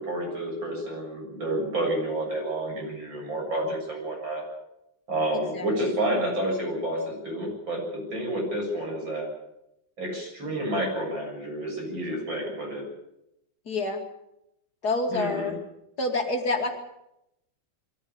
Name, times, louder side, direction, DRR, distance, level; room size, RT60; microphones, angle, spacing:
voice 1, 0.0-4.5 5.1-9.3 10.0-12.9 15.1-15.5, right 1 dB, 80° right, 0 dB, 8.4 m, -29 dB
voice 2, 13.7-14.0 14.8-15.6 16.0-16.7, left 2 dB, 55° left, 3 dB, 3.1 m, -27 dB
22.5 x 15.0 x 8.8 m, 0.84 s
omnidirectional pair, 2.1 m